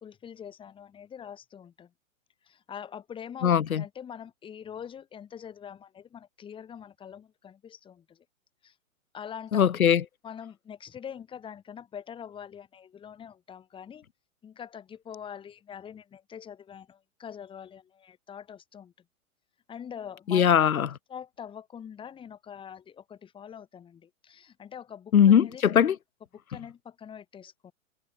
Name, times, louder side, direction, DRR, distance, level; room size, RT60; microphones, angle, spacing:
voice 1, 0.0-1.9 2.4-3.5 3.8-8.2 8.6-8.7 9.1-9.6 10.2-14.0 14.4-18.9 19.7-20.4 21.1-25.6 26.3-27.7, left 8 dB, 10° left, 1.4 m, -44 dB
voice 2, 3.4-3.8 9.5-10.0 20.3-20.9 25.1-26.0, left 8 dB, 90° left, 0.6 m, -20 dB
figure-of-eight pair, 115°, 41 cm